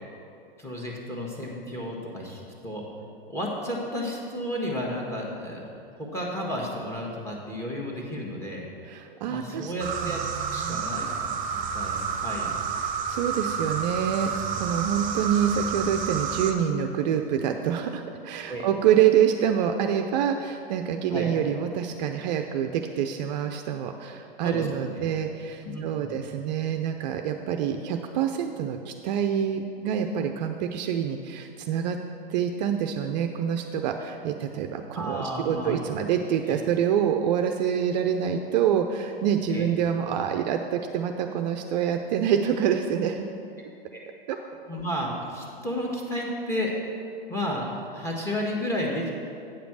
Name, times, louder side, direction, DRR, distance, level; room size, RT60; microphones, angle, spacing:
voice 1, 0.6-2.8 3.3-8.7 9.3-10.2 10.5-11.4 11.7-12.6 18.5-18.7 21.1-21.3 24.4-25.0 25.6-26.2 34.9-35.8 36.5-36.6 39.5-39.7 43.9-44.1 44.7-46.7 47.3-49.1, equal, 10° left, -2 dB, 1.6 m, -32 dB
voice 2, 8.8-9.7 10.0-10.8 12.8-32.0 32.3-43.3 44.3-44.4, right 8 dB, 50° right, 5 dB, 0.5 m, -26 dB
sound 1, 9.8-16.5, right 6 dB, 25° right, 0.9 m, -30 dB
8.9 x 5.1 x 6.1 m, 2.5 s
hypercardioid pair, 110°, 29 cm